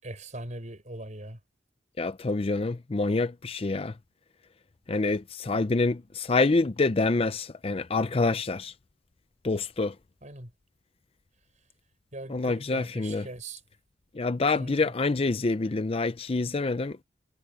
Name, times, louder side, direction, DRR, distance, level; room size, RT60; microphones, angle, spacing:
voice 1, 0.0-1.4 10.2-10.5 12.1-13.6 14.6-14.9, right 1 dB, 40° right, 6.7 m, -41 dB
voice 2, 2.0-3.9 4.9-8.7 9.4-9.9 12.3-13.3 14.1-17.0, left 3 dB, 30° left, 0.5 m, -26 dB
head